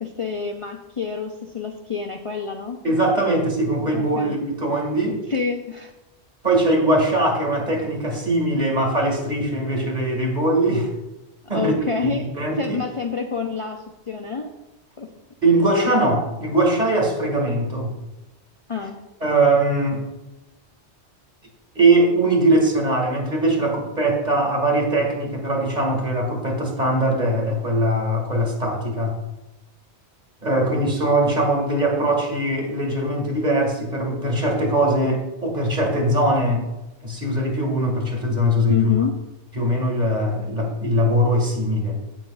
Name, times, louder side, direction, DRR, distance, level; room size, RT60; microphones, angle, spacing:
voice 1, 0.0-2.8 3.9-4.4 5.3-5.9 11.5-12.3 12.6-14.5 15.0-15.1 18.7-19.0 38.7-39.2, left 5 dB, 35° left, 3 dB, 0.6 m, -27 dB
voice 2, 2.8-5.2 6.4-10.9 11.5-11.7 12.1-12.8 15.4-17.9 19.2-20.0 21.7-29.2 30.4-36.7 37.0-38.9 39.6-42.0, right 1 dB, 40° right, 1 dB, 2.1 m, -21 dB
15.5 x 7.2 x 2.4 m, 0.99 s
omnidirectional pair, 1.2 m